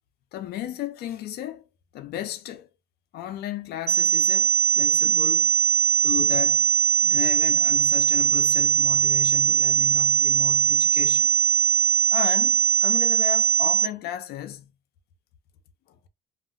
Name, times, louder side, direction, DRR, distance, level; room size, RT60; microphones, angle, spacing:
voice 1, 0.3-1.6 1.9-2.7 3.1-5.5 6.0-6.7 7.0-11.4 12.1-14.7, left 12 dB, 70° left, 0.5 m, -34 dB
sound 1, 3.9-13.9, right 8 dB, 40° right, 0.6 m, -20 dB
2.1 x 2.0 x 3.6 m
cardioid pair, 110°, 17 cm